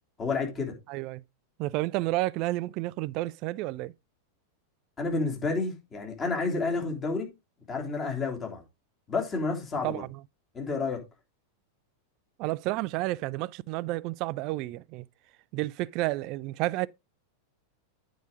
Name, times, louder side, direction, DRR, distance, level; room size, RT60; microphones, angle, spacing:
voice 1, 0.2-0.7 5.0-7.3 7.7-8.6 9.1-10.0 10.5-11.0, left 4 dB, 25° left, 3.1 m, -30 dB
voice 2, 0.9-1.2 1.6-3.9 9.8-10.2 12.4-15.1 15.5-16.9, right 18 dB, 40° right, 0.4 m, -31 dB
9.4 x 5.1 x 4.8 m
figure-of-eight pair, 90°, 0 cm